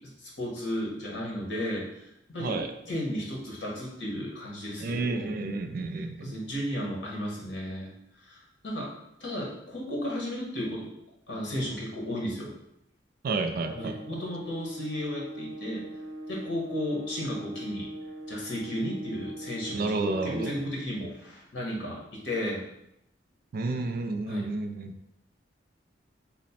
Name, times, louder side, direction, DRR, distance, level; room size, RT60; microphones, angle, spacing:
voice 1, 0.0-2.6 2.9-5.4 6.2-7.9 8.2-8.9 9.2-10.9 11.3-12.5 13.7-15.9 16.3-17.9 18.3-20.0 20.2-22.6 24.3-24.5, equal, 70° left, -3 dB, 1.0 m, -34 dB
voice 2, 4.8-6.3 13.2-13.9 19.7-20.5 23.5-24.9, right 3 dB, 55° right, 6 dB, 0.3 m, -30 dB
sound 1, 13.6-20.6, right 1 dB, 70° right, 0.9 m, -41 dB
3.0 x 2.0 x 4.1 m, 0.81 s
head